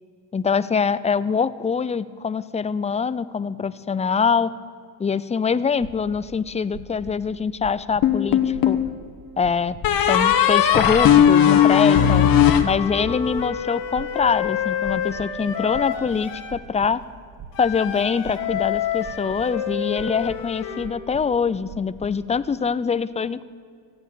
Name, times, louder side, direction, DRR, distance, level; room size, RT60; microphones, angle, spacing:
voice 1, 0.3-4.5 5.0-8.8 9.4-9.8 10.0-12.3 12.6-17.0 17.6-23.5, left 6 dB, 15° left, 15 dB, 0.5 m, -24 dB
sound 1, 5.8-6.2 6.7-7.2 7.6-8.2 8.5-9.0 9.4-9.9 10.3-10.7 11.2-11.7 12.1-12.6 13.0-13.5 13.9-14.5 14.8-15.3 15.7-16.9 17.4-17.8 18.2-18.8 19.0-19.5 19.9-20.4 20.8-21.3 21.7-22.1, right 6 dB, 40° right, 1.6 m, -41 dB
sound 2, 8.0-8.9 9.8-13.3, left 9 dB, 55° left, 1.4 m, -17 dB
Wind instrument woodwind instrument, 12.5-16.6 17.5-20.9, left 8 dB, 80° left, 2.2 m, -29 dB
15.0 x 9.1 x 8.4 m, 2.2 s
cardioid pair, 105°, 42 cm